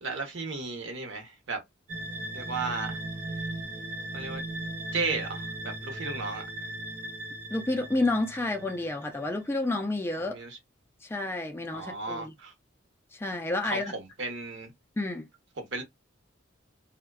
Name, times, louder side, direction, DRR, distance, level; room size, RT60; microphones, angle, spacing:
voice 1, 0.0-1.6 2.3-3.0 4.1-4.4 4.9-6.5 10.2-10.6 11.7-12.5 13.6-14.7 15.6-15.8, right 3 dB, 65° right, 0.8 m, -34 dB
sound 1, 1.9-9.4, right 2 dB, 40° right, 0.7 m, -38 dB
voice 2, 7.5-10.4 11.0-12.3 13.1-14.0 15.0-15.3, left 2 dB, 10° left, 0.3 m, -30 dB
2.6 x 2.1 x 2.3 m
head